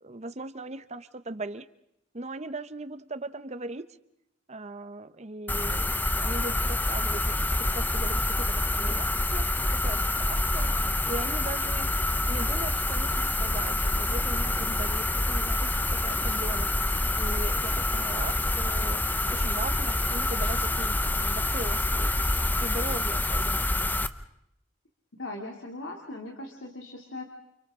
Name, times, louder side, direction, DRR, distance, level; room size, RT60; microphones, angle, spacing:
voice 1, 0.0-1.7 2.1-4.0 4.5-7.3 7.7-11.9 12.2-19.0 19.3-22.2 22.6-23.7, right 2 dB, 35° right, 13 dB, 0.9 m, -39 dB
sound 1, 5.5-24.1, left 1 dB, 10° left, 0.8 m, -27 dB
voice 2, 25.1-27.2, left 2 dB, 85° left, 1 dB, 2.9 m, -39 dB
29.5 x 29.0 x 3.8 m, 0.79 s
head